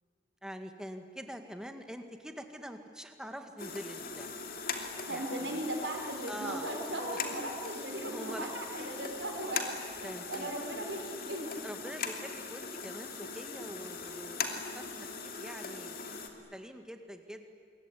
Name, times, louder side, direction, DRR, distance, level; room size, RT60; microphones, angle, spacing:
voice 1, 0.4-4.3 5.0-5.6 6.3-6.7 8.1-8.9 10.0-10.5 11.6-14.5 14.7-14.9 15.2-17.5, equal, 5° right, 6 dB, 1.9 m, -45 dB
sound 1, 3.6-16.3, left 4 dB, 50° left, 2.8 m, -40 dB
voice 2, 5.1-11.7, right 1 dB, 85° right, 2 dB, 5.2 m, -38 dB
26.5 x 22.5 x 9.9 m, 2.4 s
head